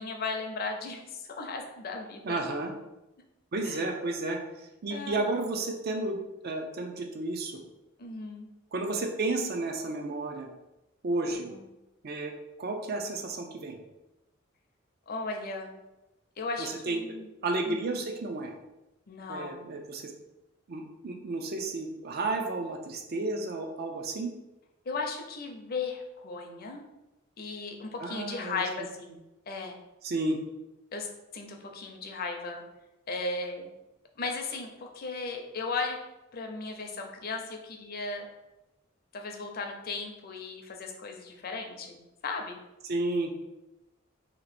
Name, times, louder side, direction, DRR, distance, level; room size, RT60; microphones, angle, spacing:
voice 1, 0.0-2.4 3.6-3.8 4.9-5.3 8.0-8.5 11.2-11.6 15.1-15.7 16.4-17.3 17.7-18.0 19.1-19.7 24.9-26.8 27.4-29.2 29.5-29.7 30.9-32.6 33.1-33.7 34.2-36.0 36.3-38.3 39.1-42.6, left 3 dB, 50° left, 3 dB, 0.6 m, -36 dB
voice 2, 2.2-2.7 3.5-7.6 8.7-10.5 11.0-11.5 12.0-12.3 12.6-13.8 16.6-17.1 17.4-18.5 19.3-20.1 20.7-24.3 28.0-28.6 30.0-30.4 42.9-43.3, right 2 dB, 50° right, 3 dB, 0.5 m, -32 dB
3.0 x 2.9 x 4.2 m, 0.97 s
head